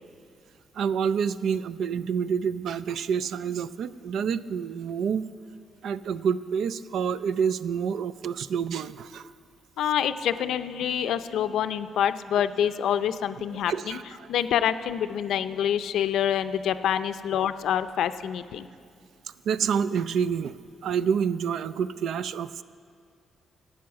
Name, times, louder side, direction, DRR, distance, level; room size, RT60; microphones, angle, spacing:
voice 1, 0.7-5.3 5.8-9.3 13.5-14.3 19.5-20.6 20.8-22.6, right 7 dB, 80° right, 15 dB, 0.4 m, -28 dB
voice 2, 9.8-14.0 14.3-18.7, left 9 dB, 85° left, 12 dB, 0.5 m, -26 dB
12.5 x 8.6 x 7.1 m, 2.2 s
cardioid pair, 95°, 0 cm